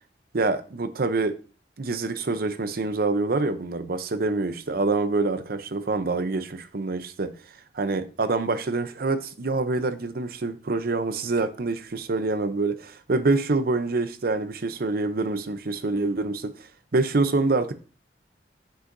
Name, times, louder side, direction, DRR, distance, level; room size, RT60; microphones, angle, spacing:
voice 1, 0.3-1.4 1.8-7.3 7.7-16.5 16.9-17.7, right 3 dB, 55° right, 0.6 m, -26 dB
8.0 x 6.3 x 2.6 m
head